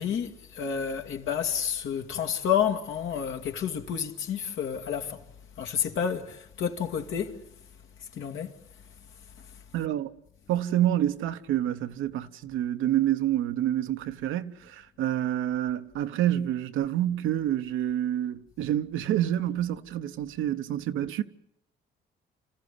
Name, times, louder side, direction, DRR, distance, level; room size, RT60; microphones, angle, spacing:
voice 1, 0.0-5.3 5.6-7.4 8.0-8.5 9.4-9.5, left 8 dB, 80° left, 2.2 m, -30 dB
voice 2, 9.7-10.2 10.5-21.2, right 12 dB, 90° right, 1.0 m, -28 dB
27.0 x 14.5 x 9.8 m
cardioid pair, 90°, 20 cm